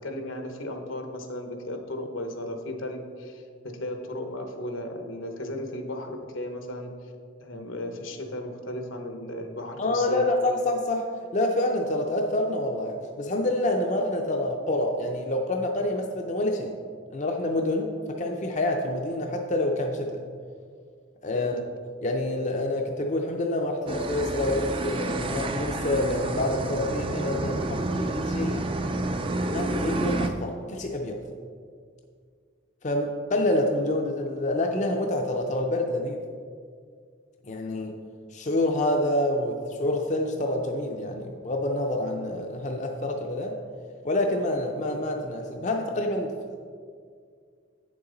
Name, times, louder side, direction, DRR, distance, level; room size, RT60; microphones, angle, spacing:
voice 1, 0.0-6.9 7.4-10.2 21.3-21.5, left 1 dB, 75° left, 4 dB, 1.0 m, -35 dB
voice 2, 9.8-11.1 11.3-16.7 17.1-20.2 21.2-21.6 22.0-28.7 29.4-31.2 32.8-36.2 37.4-37.9 38.3-43.6 44.0-46.3, left 1 dB, 35° left, 2 dB, 0.5 m, -27 dB
sound 1, 23.9-30.3, right 2 dB, 25° right, 0.4 m, -29 dB
8.6 x 6.9 x 3.9 m, 2.1 s
head